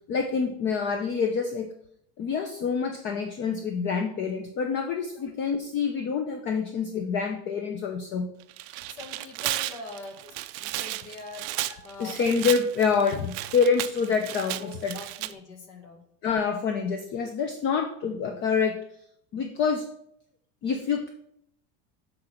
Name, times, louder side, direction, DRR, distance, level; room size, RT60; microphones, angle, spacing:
voice 1, 0.1-1.7 2.2-8.3 11.7-15.0 16.2-18.8 19.3-19.9 20.6-21.1, left 5 dB, 35° left, 5 dB, 0.7 m, -27 dB
Tearing, 8.4-15.3, right 17 dB, 50° right, 0.4 m, -34 dB
voice 2, 9.0-10.2 10.6-11.4 11.8-12.2 14.6-16.0, left 3 dB, 65° left, 4 dB, 1.9 m, -43 dB
7.9 x 3.9 x 5.8 m, 0.74 s
supercardioid pair, 150°, 32 cm